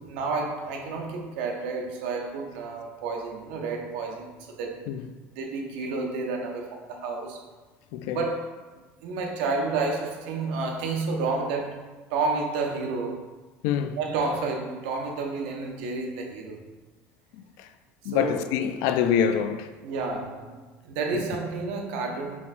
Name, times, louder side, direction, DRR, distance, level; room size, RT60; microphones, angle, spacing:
voice 1, 0.1-4.3 4.6-4.8 5.3-7.4 8.1-8.5 9.0-13.2 14.0-16.6 18.1-18.4 19.8-22.4, right 3 dB, 90° right, 0.7 m, -30 dB
voice 2, 7.9-8.3 13.6-14.0 17.3-17.7 18.0-19.7 21.1-21.2, left 8 dB, 75° left, 0.3 m, -26 dB
4.8 x 3.3 x 2.6 m
cardioid pair, 125°, 5 cm